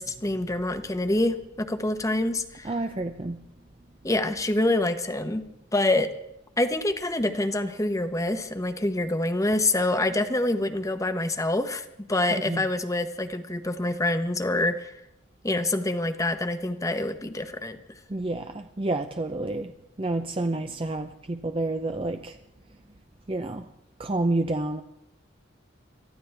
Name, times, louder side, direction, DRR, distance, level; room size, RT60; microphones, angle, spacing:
voice 1, 0.0-2.7 4.0-5.4 5.7-6.1 6.6-14.9 15.4-17.8, left 2 dB, 15° left, 1.0 m, -26 dB
voice 2, 2.6-3.4 12.5-12.6 18.1-19.7 20.0-22.3 23.3-23.6 24.0-24.8, right 2 dB, 30° right, 0.6 m, -29 dB
23.5 x 14.0 x 3.4 m
head